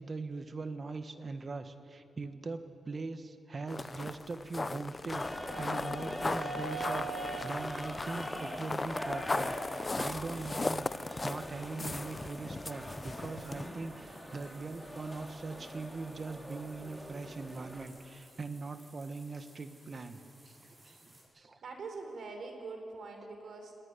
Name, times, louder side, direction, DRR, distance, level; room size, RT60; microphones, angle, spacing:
voice 1, 0.0-7.1 7.4-10.9 11.2-20.2 20.4-21.6, right 3 dB, 35° right, 9 dB, 1.4 m, -41 dB
sound 1, 3.7-13.7, left 3 dB, 25° left, 0.4 m, -37 dB
sound 2, 5.1-17.8, equal, ahead, 2.8 m, -42 dB
sound 3, 6.9-21.2, right 1 dB, 20° right, 6.7 m, -59 dB
voice 2, 21.6-23.7, right 3 dB, 60° right, 4 dB, 4.3 m, -43 dB
20.0 x 17.5 x 9.7 m, 2.7 s
wide cardioid pair, 120°, 0 cm